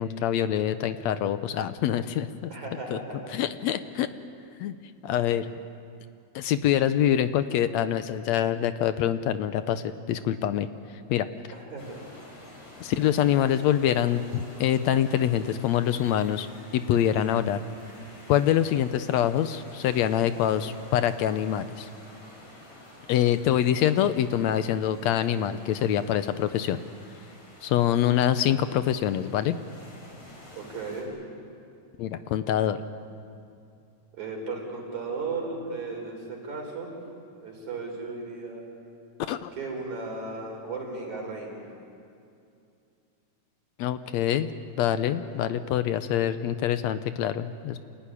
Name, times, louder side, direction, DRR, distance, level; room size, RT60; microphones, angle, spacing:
voice 1, 0.0-2.5 2.9-3.0 3.3-4.1 4.6-4.8 5.0-5.5 6.4-10.7 11.1-11.3 12.8-16.5 16.7-17.6 18.3-21.9 23.1-26.8 27.6-29.6 32.0-32.8 39.2-39.5 43.8-44.5 44.8-47.8, left 10 dB, 75° left, 11 dB, 1.9 m, -25 dB
voice 2, 2.5-3.3 11.5-12.0 30.5-31.1 34.1-36.9 37.4-38.6 39.5-41.6 45.3-45.5, right 3 dB, 70° right, 0 dB, 5.7 m, -35 dB
sound 1, 11.8-31.0, left 1 dB, 55° left, 5.8 m, -49 dB
27.0 x 16.0 x 9.9 m, 2.5 s
omnidirectional pair, 3.4 m